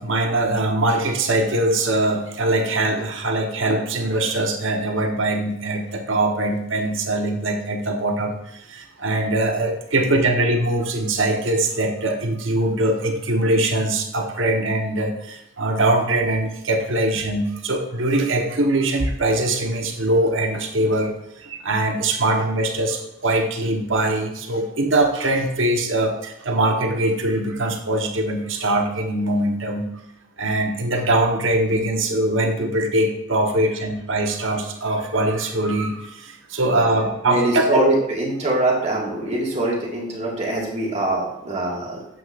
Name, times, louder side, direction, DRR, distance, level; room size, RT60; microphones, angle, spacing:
voice 1, 0.0-29.9 30.4-37.8, right 1 dB, 65° right, 3 dB, 1.2 m, -22 dB
voice 2, 37.2-42.0, right 1 dB, 30° right, -3 dB, 2.0 m, -23 dB
9.6 x 7.7 x 2.6 m, 0.82 s
head